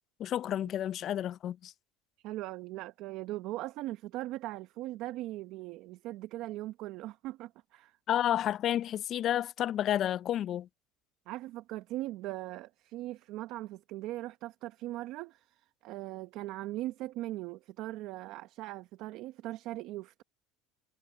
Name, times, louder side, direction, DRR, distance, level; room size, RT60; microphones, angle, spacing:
voice 1, 0.2-1.7 8.1-10.7, left 11 dB, 50° left, 0.3 m, -30 dB
voice 2, 2.2-8.0 11.3-20.2, right 16 dB, 65° right, 0.8 m, -40 dB
supercardioid pair, 105°, 0 cm